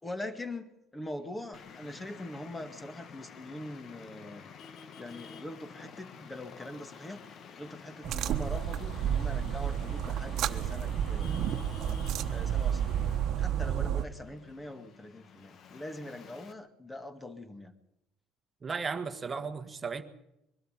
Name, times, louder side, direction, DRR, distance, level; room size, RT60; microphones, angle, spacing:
voice 1, 0.0-4.6 5.0-7.2 7.6-11.5 12.3-13.1 13.4-17.7, left 1 dB, 10° left, 2.0 m, -43 dB
Traffic noise roadway noise, 1.5-16.5, left 6 dB, 45° left, 1.3 m, -50 dB
sound 1, 8.0-14.0, right 9 dB, 60° right, 1.3 m, -31 dB
voice 2, 18.6-20.0, right 5 dB, 25° right, 1.5 m, -35 dB
23.0 x 13.0 x 9.8 m
cardioid pair, 125°, 0 cm